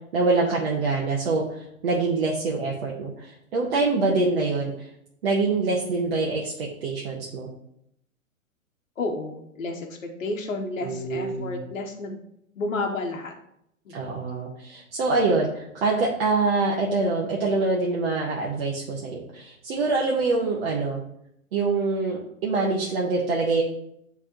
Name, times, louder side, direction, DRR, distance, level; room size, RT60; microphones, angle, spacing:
voice 1, 0.1-4.9 5.2-7.5 10.8-11.6 13.9-21.0 21.5-23.6, right 3 dB, 45° right, -3 dB, 1.2 m, -25 dB
voice 2, 9.0-12.2 12.6-13.3 13.9-14.1, left 2 dB, 65° left, 2 dB, 1.1 m, -31 dB
9.7 x 3.6 x 3.0 m, 0.75 s
figure-of-eight pair, 120°, 41 cm